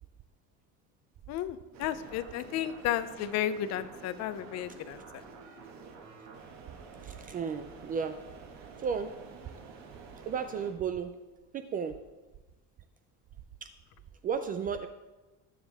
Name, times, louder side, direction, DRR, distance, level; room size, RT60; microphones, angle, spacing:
voice 1, 1.3-5.0, left 11 dB, 50° left, 13 dB, 0.7 m, -33 dB
sound 1, 1.7-10.7, right 5 dB, 50° right, 2.0 m, -49 dB
voice 2, 7.1-8.2 8.8-9.1 10.3-11.1 11.5-11.9 13.6-13.7 14.2-14.9, right 6 dB, 25° right, 8 dB, 0.3 m, -33 dB
19.5 x 7.3 x 3.5 m, 1.2 s
cardioid pair, 180°, 34 cm